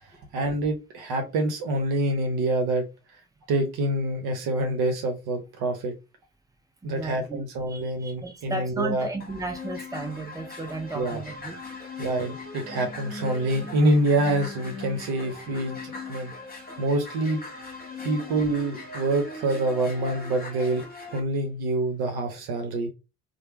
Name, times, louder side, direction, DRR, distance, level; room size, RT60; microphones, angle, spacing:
voice 1, 0.3-2.8 3.5-5.9 6.8-9.1 10.9-11.2 12.0-16.3 16.8-17.4 18.0-20.8 21.1-22.9, right 2 dB, 60° right, 0.8 m, -26 dB
voice 2, 6.8-7.4 7.7-11.5, right 3 dB, 10° right, 1.0 m, -34 dB
sound 1, 9.2-21.2, left 3 dB, 20° left, 1.3 m, -40 dB
3.2 x 2.0 x 3.0 m
figure-of-eight pair, 40°, 44 cm